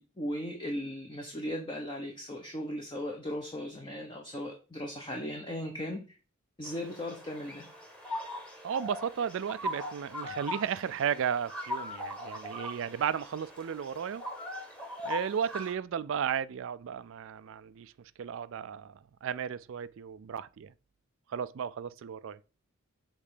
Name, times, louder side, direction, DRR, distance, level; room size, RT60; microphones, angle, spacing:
voice 1, 0.0-6.2 6.6-7.7, equal, 25° left, 0.9 m, -37 dB
sound 1, 6.6-15.7, left 1 dB, 5° left, 1.3 m, -40 dB
voice 2, 8.6-14.2 15.0-17.9 18.2-20.7 21.3-22.4, right 8 dB, 65° right, 0.4 m, -34 dB
6.7 x 3.2 x 4.9 m
head